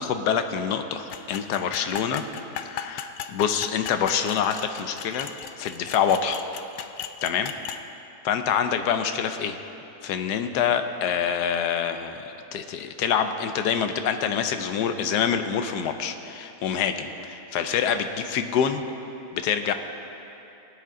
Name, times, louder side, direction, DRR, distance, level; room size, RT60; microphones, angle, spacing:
voice 1, 0.0-2.2 2.6-5.3 5.6-6.4 7.2-7.5 8.2-9.6 10.0-18.8 19.3-19.7, left 7 dB, 90° left, 8 dB, 1.3 m, -26 dB
sound 1, 1.1-7.8, left 9 dB, 75° left, 0.6 m, -37 dB
19.5 x 9.3 x 3.7 m, 2.9 s
omnidirectional pair, 1.7 m